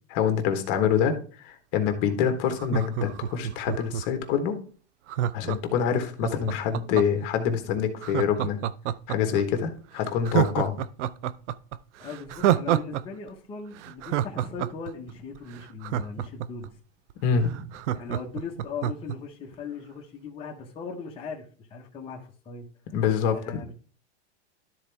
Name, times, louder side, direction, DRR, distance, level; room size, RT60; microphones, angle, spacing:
voice 1, 0.1-1.1 1.4-4.6 5.3-8.6 9.1-10.8 17.2-17.6 22.9-23.4, left 7 dB, 40° left, 7 dB, 1.4 m, -25 dB
voice 2, 0.7-1.1 1.8-2.1 12.0-16.7 17.9-22.9 23.3-23.7, left 5 dB, 15° left, -2 dB, 1.1 m, -39 dB
Laughter, 2.5-4.2 5.1-7.3 8.0-9.4 9.8-9.9 10.2-13.0 13.3-13.4 13.8-16.7 17.1-17.2 17.4-19.2 19.5-19.6, right 12 dB, 85° right, 0.6 m, -28 dB
12.5 x 4.3 x 3.4 m, 0.40 s
supercardioid pair, 155°, 35 cm